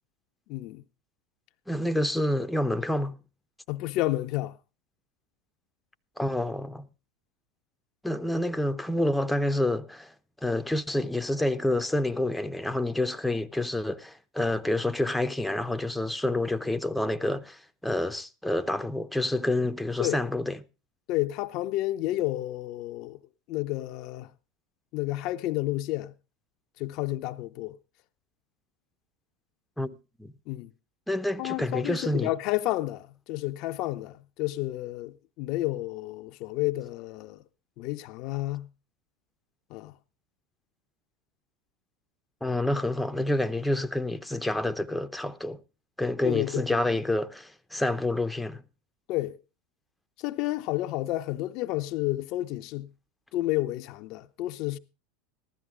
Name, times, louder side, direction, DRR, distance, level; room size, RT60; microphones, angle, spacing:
voice 1, 0.5-0.8 3.7-4.6 20.0-20.2 21.1-23.2 23.5-24.3 24.9-26.1 26.8-27.8 30.5-30.7 31.4-37.4 37.8-38.7 39.7-39.9 46.2-47.0 49.1-49.4 50.2-52.9 53.3-54.8, left 17 dB, 55° left, 0.6 m, -31 dB
voice 2, 1.7-3.2 6.2-6.9 8.0-10.1 10.4-20.6 29.8-29.9 30.2-30.3 31.1-32.3 42.4-45.6 46.0-48.6, left 1 dB, 5° left, 0.8 m, -28 dB
15.0 x 12.5 x 3.7 m
hypercardioid pair, 90°, 0 cm